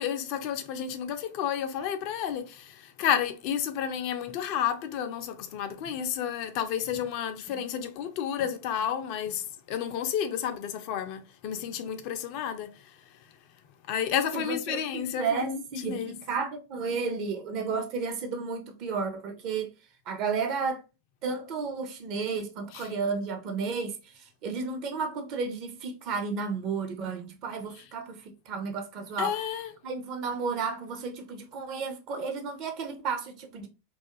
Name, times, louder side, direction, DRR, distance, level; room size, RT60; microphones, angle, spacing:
voice 1, 0.0-12.9 13.9-16.1 22.7-22.9 29.2-29.7, left 9 dB, 45° left, 0.4 m, -31 dB
voice 2, 14.3-19.7 20.1-20.8 21.2-28.2 28.5-29.4 29.8-33.7, right 5 dB, 40° right, 0.6 m, -32 dB
2.3 x 2.3 x 2.7 m
figure-of-eight pair, 90°, 0 cm